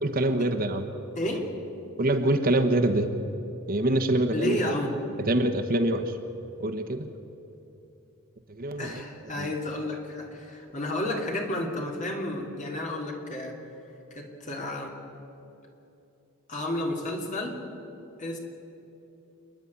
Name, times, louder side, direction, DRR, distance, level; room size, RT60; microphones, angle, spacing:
voice 1, 0.0-0.9 2.0-3.1 3.7-4.6 5.3-6.1 6.6-7.1 8.5-9.0 9.4-9.5, right 1 dB, 45° right, 7 dB, 1.2 m, -25 dB
voice 2, 1.1-1.5 4.3-5.0 8.8-13.6 14.1-15.0 16.5-17.6 18.2-18.4, left 1 dB, 35° left, 1 dB, 3.0 m, -31 dB
28.5 x 10.0 x 9.6 m, 2.9 s
head